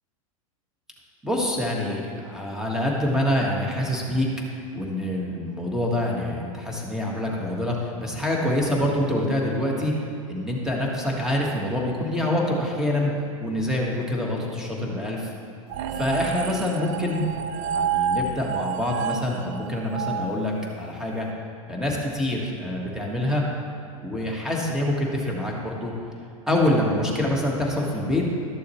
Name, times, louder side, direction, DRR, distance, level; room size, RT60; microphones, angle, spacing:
voice 1, 1.2-4.3 4.7-9.9 10.3-13.1 13.4-15.3 16.0-21.3 21.7-23.4 24.0-25.9 26.5-28.3, left 1 dB, 5° right, -2 dB, 1.7 m, -26 dB
sound 1, 15.7-21.1, right 7 dB, 55° right, 0.5 m, -30 dB
13.0 x 6.9 x 3.2 m, 2.4 s
hypercardioid pair, 105°, 18 cm